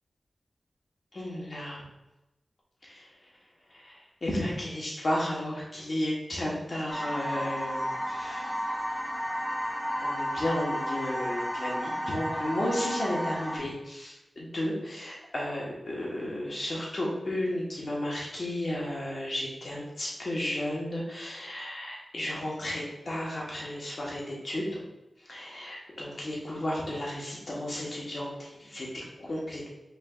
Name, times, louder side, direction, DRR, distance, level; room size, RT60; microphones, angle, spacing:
voice 1, 1.1-1.8 2.9-3.1 3.7-8.5 10.0-24.8 25.3-29.7, left 1 dB, 50° left, -4 dB, 1.2 m, -33 dB
sound 1, 6.9-13.6, equal, 5° right, 0.7 m, -32 dB
5.3 x 3.3 x 2.4 m, 0.98 s
wide cardioid pair, 80°, 0 cm